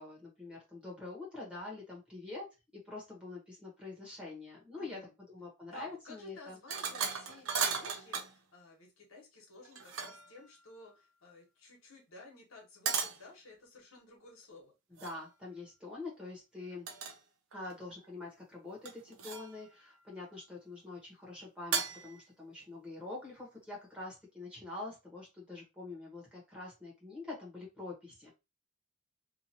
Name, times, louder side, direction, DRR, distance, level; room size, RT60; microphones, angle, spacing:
voice 1, 0.0-2.5 2.7-5.0 5.3-6.6 14.9-16.9 17.5-28.3, left 3 dB, 5° right, -3 dB, 1.1 m, -45 dB
voice 2, 4.8-5.1 5.7-14.7, left 2 dB, 70° left, 0 dB, 1.2 m, -55 dB
sound 1, 6.7-8.3 9.6-10.4 12.9-13.2 15.0-15.2 16.9-17.2 17.5-18.1 18.9-19.6 21.7-22.3, right 6 dB, 70° right, 0.6 m, -36 dB
2.8 x 2.5 x 2.8 m, 0.25 s
head